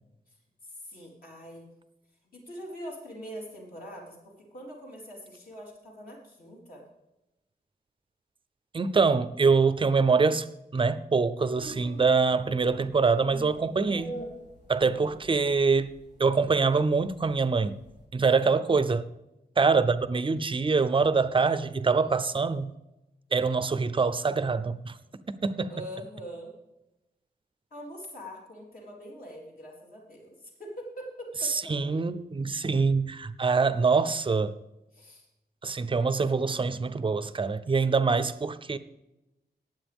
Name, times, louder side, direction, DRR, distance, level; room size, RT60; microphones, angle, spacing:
voice 1, 0.6-1.7 2.3-6.9 14.9-15.3 18.2-18.7 25.7-26.5 27.7-31.9 34.9-35.3, equal, 60° left, 3.9 m, -43 dB
voice 2, 8.7-10.5 10.7-14.2 14.7-15.9 16.2-17.7 18.1-19.1 19.6-22.7 23.3-25.0 25.4-25.7 31.4-34.5 35.6-38.8, right 4 dB, 30° right, 0.5 m, -24 dB
sound 1, 11.5-18.0, equal, 85° left, 4.0 m, -45 dB
19.5 x 7.7 x 3.5 m
wide cardioid pair, 170°, 17 cm